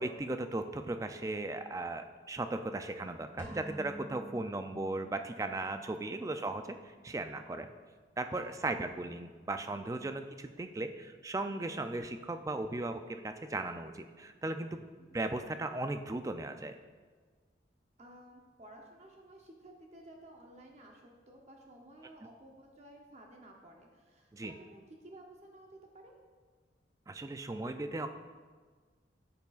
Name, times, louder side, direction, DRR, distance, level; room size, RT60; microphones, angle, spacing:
voice 1, 0.0-6.8 7.0-7.7 8.2-14.9 15.1-16.8 24.3-24.5 27.1-28.1, right 2 dB, 15° right, 8 dB, 0.3 m, -37 dB
sound 1, 3.4-5.4, equal, 10° left, 1.3 m, -47 dB
voice 2, 8.4-9.0 15.0-15.2 18.0-26.1, right 1 dB, 35° right, 0 dB, 0.8 m, -55 dB
10.5 x 8.3 x 2.4 m, 1.5 s
head